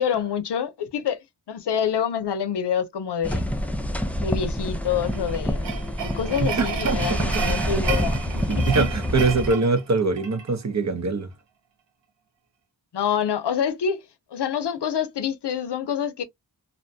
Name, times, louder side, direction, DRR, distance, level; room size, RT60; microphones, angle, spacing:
voice 1, 0.0-3.5 4.2-5.8 6.0-8.9 12.9-16.2, left 8 dB, 75° left, 0.6 m, -27 dB
sound 1, 3.2-9.5, equal, 5° left, 0.4 m, -27 dB
sound 2, 5.0-10.5, right 7 dB, 85° right, 0.7 m, -33 dB
voice 2, 6.6-7.2 8.5-11.3, right 3 dB, 40° right, 0.7 m, -23 dB
2.5 x 2.2 x 2.6 m
cardioid pair, 55°, 41 cm